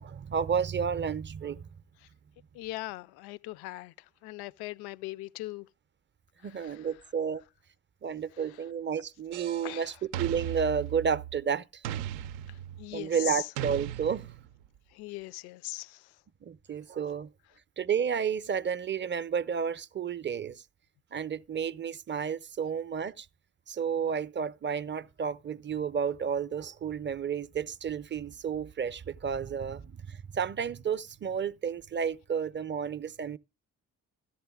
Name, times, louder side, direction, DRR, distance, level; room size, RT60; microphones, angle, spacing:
voice 1, 0.0-1.7 6.4-7.4 8.0-11.8 12.9-14.3 16.4-17.3 17.8-20.6 21.1-23.3 23.7-33.4, right 7 dB, 30° right, 0.5 m, -31 dB
voice 2, 2.5-5.7 6.4-6.8 9.6-9.9 12.5-13.5 14.9-16.1, left 18 dB, 70° left, 0.5 m, -40 dB
sound 1, 9.3-9.7 10.1-11.4 11.8-12.9 13.6-14.6, right 11 dB, 75° right, 0.5 m, -37 dB
13.5 x 11.5 x 2.3 m
hypercardioid pair, 45°, 40 cm